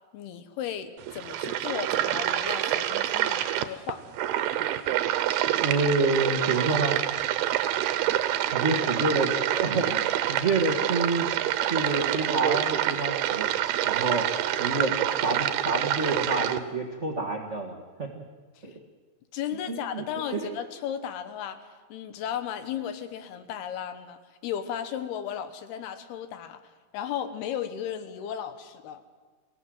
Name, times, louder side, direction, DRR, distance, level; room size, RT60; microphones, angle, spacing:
voice 1, 0.1-4.0 18.6-18.7 19.3-26.6 26.9-29.0, left 9 dB, 80° left, 10 dB, 3.2 m, -35 dB
sound 1, 1.0-16.6, right 12 dB, 85° right, 2.9 m, -27 dB
voice 2, 5.6-7.0 8.5-11.3 11.7-13.5 13.8-14.3 14.6-15.0 15.2-18.2 18.6-18.7 19.7-20.0 20.3-20.5, right 3 dB, 70° right, 1 dB, 0.6 m, -28 dB
24.0 x 17.0 x 7.9 m, 1.4 s
omnidirectional pair, 4.6 m